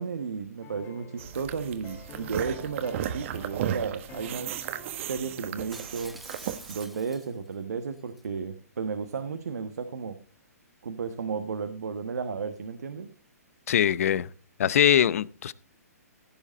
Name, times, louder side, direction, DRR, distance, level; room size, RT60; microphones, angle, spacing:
voice 1, 0.0-4.7 5.0-6.2 6.7-10.2 10.8-13.1, right 5 dB, 75° right, 1.2 m, -33 dB
sound 1, 0.6-7.2 7.5-7.7, left 4 dB, 25° left, 2.0 m, -51 dB
sound 2, 1.2-6.9, right 10 dB, 50° right, 1.3 m, -35 dB
Shatter, 5.7-7.5 8.0-8.2, right 1 dB, ahead, 0.9 m, -47 dB
voice 2, 13.7-14.3 14.6-15.5, left 10 dB, 60° left, 0.7 m, -22 dB
16.0 x 7.3 x 4.1 m
hypercardioid pair, 130°, 9 cm